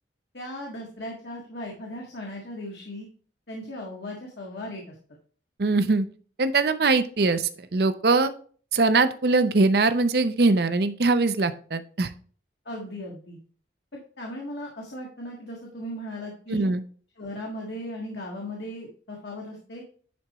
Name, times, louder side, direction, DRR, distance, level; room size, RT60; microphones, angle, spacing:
voice 1, 0.3-3.1 3.5-4.9 12.6-13.4 13.9-16.6 17.2-19.8, left 1 dB, 70° left, -2 dB, 1.5 m, -37 dB
voice 2, 5.6-6.1 6.4-8.3 8.7-12.1 16.5-16.8, right 3 dB, 55° right, 11 dB, 0.6 m, -22 dB
10.5 x 4.3 x 3.0 m, 0.43 s
head